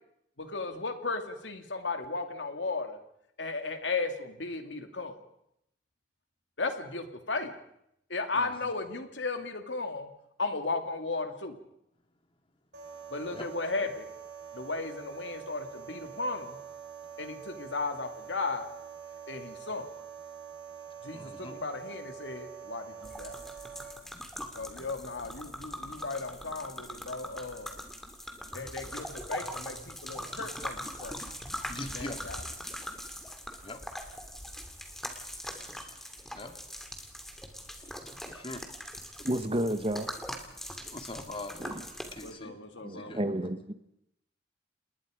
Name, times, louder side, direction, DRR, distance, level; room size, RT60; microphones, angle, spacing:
voice 1, 0.4-3.0 3.4-5.2 6.6-7.5 8.1-10.1 10.4-11.6 13.1-14.1 14.5-16.6 17.2-18.7 19.3-19.9 21.0-23.4 24.5-27.8 28.5-31.2 31.9-32.4 42.2-43.1, left 3 dB, 85° left, 7 dB, 2.5 m, -35 dB
voice 2, 8.4-8.7 13.3-13.5 21.1-21.5 31.7-32.3 33.6-33.8 36.3-36.5 37.8-37.9 38.2-38.6 40.9-41.7 42.1-42.5 42.9-43.2, left 2 dB, 30° left, 7 dB, 2.2 m, -42 dB
sound 1, 12.7-23.9, right 8 dB, 75° right, 5.7 m, -45 dB
sound 2, 23.0-42.3, equal, ahead, 2.5 m, -42 dB
voice 3, 39.2-40.1 41.6-41.8 42.8-43.7, right 1 dB, 30° right, 10 dB, 1.3 m, -31 dB
29.0 x 20.0 x 5.1 m, 0.78 s
head